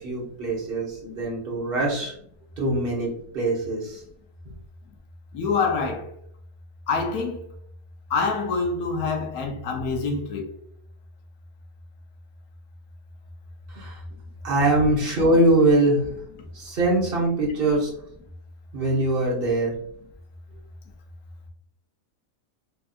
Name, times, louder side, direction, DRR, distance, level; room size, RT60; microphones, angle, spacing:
voice 1, 0.0-2.1 2.6-4.0 13.7-14.0 14.4-16.1 16.5-17.9 18.7-19.7, right 1 dB, 45° right, 1.3 m, -22 dB
voice 2, 5.3-6.1 6.9-7.5 8.1-10.5, left 4 dB, 90° left, 1.3 m, -26 dB
4.5 x 2.6 x 2.4 m
omnidirectional pair, 1.5 m